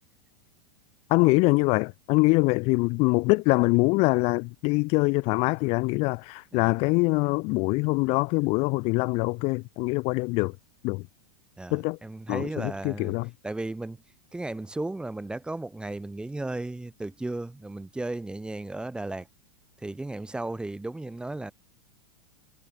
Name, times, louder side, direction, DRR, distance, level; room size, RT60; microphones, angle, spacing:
voice 1, 1.1-10.6 10.8-11.0 11.7-12.0 12.3-13.3, left 27 dB, 40° left, 0.4 m, -24 dB
voice 2, 11.6-13.1 13.4-14.0 14.3-19.3 19.8-21.5, right 2 dB, 5° right, 0.8 m, -35 dB
hypercardioid pair, 115°, 16 cm